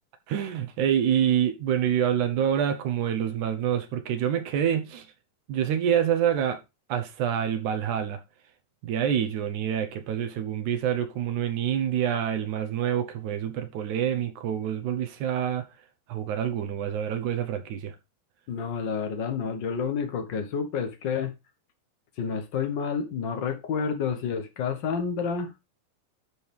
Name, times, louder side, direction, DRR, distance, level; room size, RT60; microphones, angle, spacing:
voice 1, 0.3-5.1 5.5-6.6 6.9-8.2 8.8-15.6 16.1-18.0, right 9 dB, 85° right, 2.5 m, -27 dB
voice 2, 18.5-21.3 22.2-25.5, left 6 dB, 55° left, 1.4 m, -29 dB
11.5 x 4.7 x 3.5 m
omnidirectional pair, 3.3 m